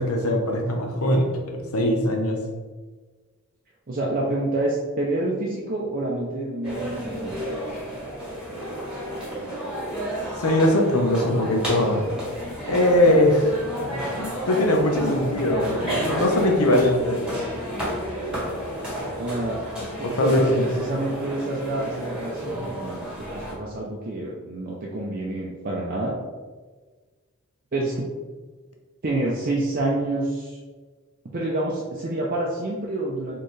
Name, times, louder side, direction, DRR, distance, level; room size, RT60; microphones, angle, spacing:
voice 1, 0.0-2.4 10.4-12.1 12.7-17.3 20.0-20.7, left 1 dB, 80° left, 2 dB, 0.9 m, -21 dB
voice 2, 3.9-7.4 19.2-19.6 20.0-23.1 23.3-26.1 27.7-28.1 29.0-30.6 31.3-33.4, right 2 dB, 40° right, -4 dB, 0.6 m, -27 dB
sound 1, 6.6-23.5, equal, 5° right, 1.4 m, -31 dB
4.4 x 3.7 x 3.2 m, 1.4 s
head